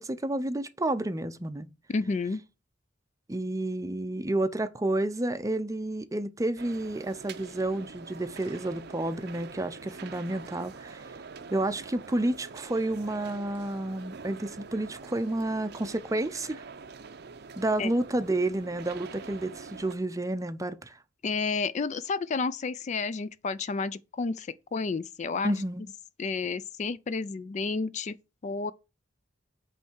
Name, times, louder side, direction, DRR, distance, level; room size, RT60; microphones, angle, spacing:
voice 1, 0.0-1.7 3.3-11.0 11.5-16.6 17.6-21.0 25.4-25.9, right 1 dB, 20° right, 0.5 m, -30 dB
voice 2, 1.9-2.4 17.8-17.9 21.2-25.5 26.2-28.2 28.4-28.7, left 4 dB, 40° left, 0.4 m, -31 dB
sound 1, 6.6-19.9, right 5 dB, 60° right, 0.6 m, -45 dB
8.4 x 3.3 x 6.2 m
head